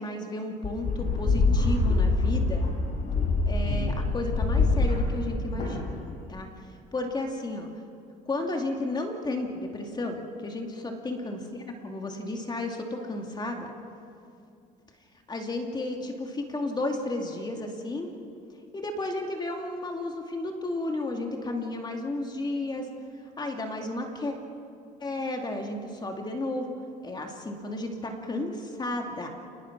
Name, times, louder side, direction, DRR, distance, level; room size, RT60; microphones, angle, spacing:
voice 1, 0.0-2.7 3.5-6.0 6.3-6.5 6.9-7.7 8.3-10.7 11.0-13.7 15.3-18.1 18.7-22.9 23.4-24.3 25.0-26.7 27.0-29.3, left 2 dB, 25° left, 3 dB, 2.5 m, -33 dB
sound 1, 0.6-6.1, left 3 dB, 45° left, 6.7 m, -25 dB
30.0 x 20.0 x 6.0 m, 2.5 s
cardioid pair, 110°, 17 cm